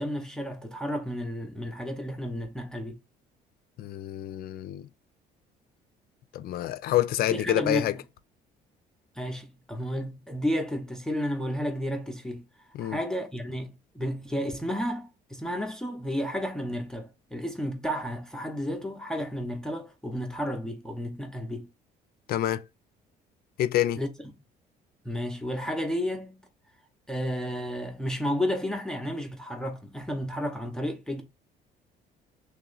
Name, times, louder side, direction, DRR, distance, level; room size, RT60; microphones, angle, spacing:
voice 1, 0.0-3.0 7.3-7.9 9.2-12.4 12.8-21.7 24.0-24.1 25.0-26.4 27.1-31.2, equal, 5° left, 0.6 m, -32 dB
voice 2, 3.8-4.9 6.3-8.0 12.7-13.0 22.3-22.6 23.6-24.0, left 13 dB, 65° left, 0.4 m, -27 dB
3.2 x 2.9 x 3.8 m
cardioid pair, 110°, 17 cm